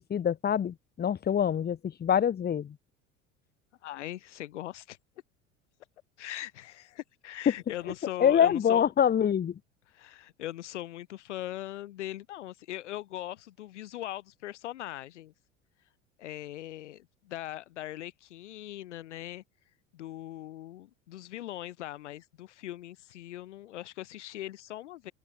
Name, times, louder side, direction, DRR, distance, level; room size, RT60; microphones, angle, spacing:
voice 1, 0.0-2.7 7.4-7.5 8.2-9.6, left 8 dB, 25° left, 1.8 m, -25 dB
voice 2, 3.8-5.0 6.2-8.9 9.9-15.3 16.2-19.4 19.9-25.1, left 14 dB, 65° left, 6.0 m, -40 dB
figure-of-eight pair, 75°, 38 cm